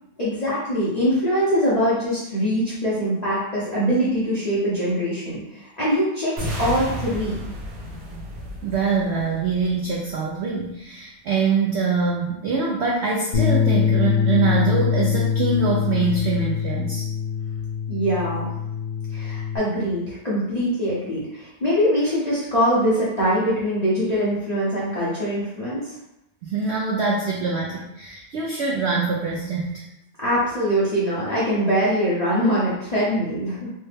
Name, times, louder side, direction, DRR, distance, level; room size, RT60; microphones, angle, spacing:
voice 1, 0.2-7.4 17.9-18.5 19.1-25.8 30.2-33.7, equal, 45° left, -9 dB, 0.5 m, -23 dB
sound 1, 6.4-10.4, equal, 50° right, 0.9 m, -33 dB
voice 2, 8.6-17.0 26.4-29.9, right 4 dB, 80° right, -3 dB, 0.6 m, -24 dB
Bass guitar, 13.3-19.6, left 7 dB, 80° left, 1.1 m, -23 dB
3.3 x 2.1 x 3.2 m, 0.88 s
omnidirectional pair, 1.7 m